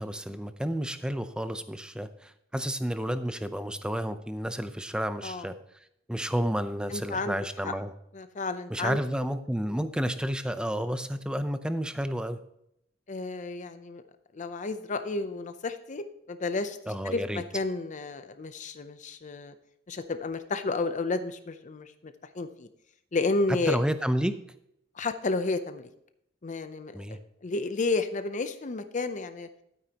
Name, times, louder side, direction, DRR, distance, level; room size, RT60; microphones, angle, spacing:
voice 1, 0.0-5.6 6.1-7.9 8.7-12.4 16.9-17.4 23.7-24.4 26.9-27.2, equal, 5° right, 10 dB, 0.6 m, -31 dB
voice 2, 6.9-7.4 7.6-7.7 8.1-9.0 13.1-14.0 14.3-16.8 17.0-19.5 19.9-22.7 23.1-23.8 25.0-25.9 26.4-29.5, left 3 dB, 40° left, 10 dB, 0.6 m, -31 dB
12.0 x 9.1 x 2.9 m, 0.75 s
head